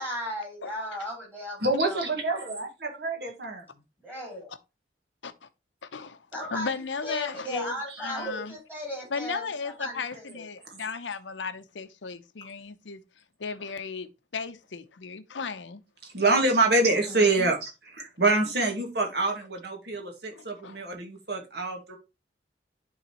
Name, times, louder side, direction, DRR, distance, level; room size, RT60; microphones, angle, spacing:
voice 1, 0.0-2.0 4.0-4.5 6.3-6.7 7.0-10.5 16.9-17.5, equal, 10° right, 3.4 m, -36 dB
voice 2, 1.6-3.6 7.9-8.0 16.1-22.0, right 2 dB, 65° right, 2.0 m, -26 dB
voice 3, 5.9-8.5 9.1-13.0 13.4-14.1 14.3-15.8 20.3-20.8, left 5 dB, 85° left, 0.7 m, -35 dB
11.5 x 3.9 x 3.0 m
head